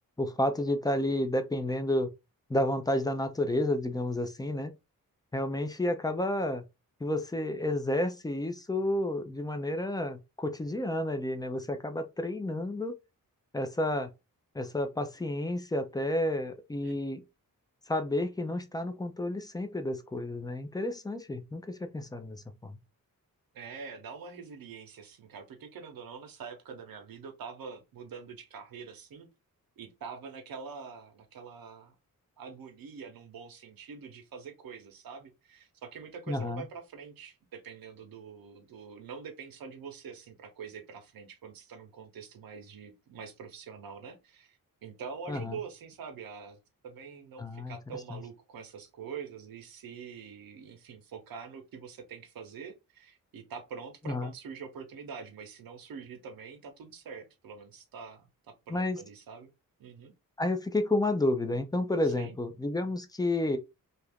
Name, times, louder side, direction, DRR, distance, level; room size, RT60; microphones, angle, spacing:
voice 1, 0.2-2.1 2.5-4.7 5.3-6.6 7.0-12.9 13.5-14.1 14.5-17.2 17.9-22.7 36.3-36.6 45.3-45.6 47.4-47.8 48.1-48.2 54.1-54.3 58.7-59.0 60.4-63.6, left 1 dB, 10° left, 0.4 m, -31 dB
voice 2, 23.5-29.3 29.8-32.0 32.4-46.6 46.8-59.5 59.8-60.1 62.0-62.3, right 6 dB, 85° right, 0.8 m, -45 dB
2.8 x 2.5 x 3.4 m
wide cardioid pair, 175°, 34 cm